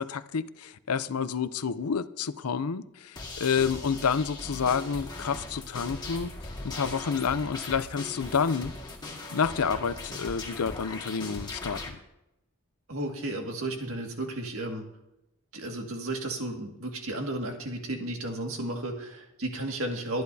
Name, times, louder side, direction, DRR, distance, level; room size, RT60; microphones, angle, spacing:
voice 1, 0.0-6.3 6.6-8.7 9.3-12.0, left 6 dB, 85° left, 0.6 m, -29 dB
sound 1, 3.2-11.9, left 2 dB, 20° left, 1.9 m, -39 dB
voice 2, 12.9-14.9 15.5-20.2, right 1 dB, 65° right, 2.0 m, -33 dB
23.0 x 10.5 x 2.8 m
head